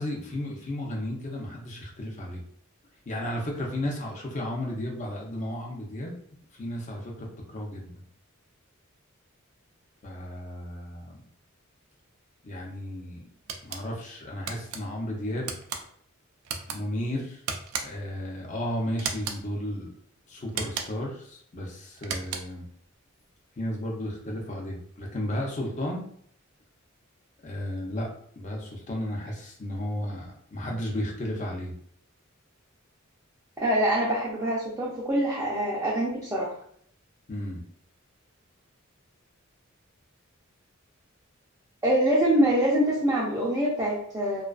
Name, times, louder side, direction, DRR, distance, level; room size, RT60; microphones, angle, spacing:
voice 1, 0.0-2.4 3.1-6.1 6.6-7.9 10.0-11.2 12.4-13.2 13.6-15.8 16.7-17.4 17.8-19.9 20.3-22.7 23.6-26.0 27.4-28.1 28.4-31.7 37.3-37.6, left 1 dB, 35° left, 0 dB, 0.6 m, -33 dB
sound 1, 13.5-13.8 14.5-14.8 15.4-15.8 16.4-16.8 17.5-18.1 19.0-19.4 20.5-21.1 22.0-22.6, right 6 dB, 85° right, 0.4 m, -34 dB
voice 2, 33.6-36.5 41.8-44.4, right 1 dB, 15° right, -7 dB, 0.5 m, -24 dB
2.3 x 2.3 x 2.3 m, 0.63 s
head